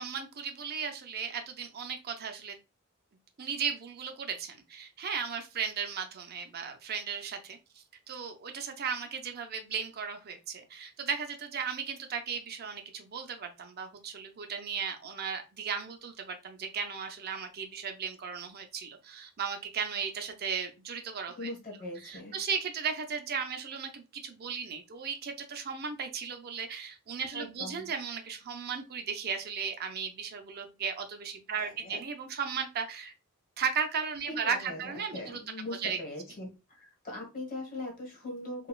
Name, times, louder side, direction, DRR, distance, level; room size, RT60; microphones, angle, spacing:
voice 1, 0.0-2.6 3.4-21.5 22.0-33.1 33.6-35.4 35.8-36.0, right 6 dB, 50° right, 6 dB, 0.5 m, -36 dB
voice 2, 21.4-22.3 27.3-27.9 31.5-32.0 34.3-34.8 35.1-38.7, left 1 dB, 40° left, 0 dB, 1.4 m, -40 dB
4.0 x 2.3 x 2.3 m, 0.27 s
head